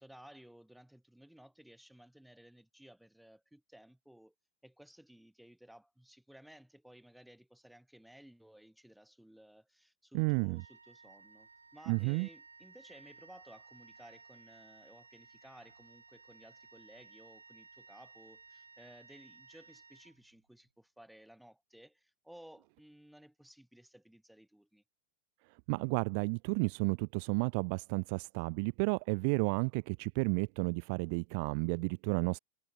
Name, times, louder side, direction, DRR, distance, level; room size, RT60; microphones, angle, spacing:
voice 1, 0.0-4.3 4.6-24.8, right 1 dB, ahead, 7.3 m, -57 dB
voice 2, 10.1-10.6 11.9-12.3 25.7-32.4, right 35 dB, 45° right, 0.4 m, -32 dB
Wind instrument woodwind instrument, 10.5-20.6, right 4 dB, 75° right, 3.6 m, -58 dB
figure-of-eight pair, 90°, 0 cm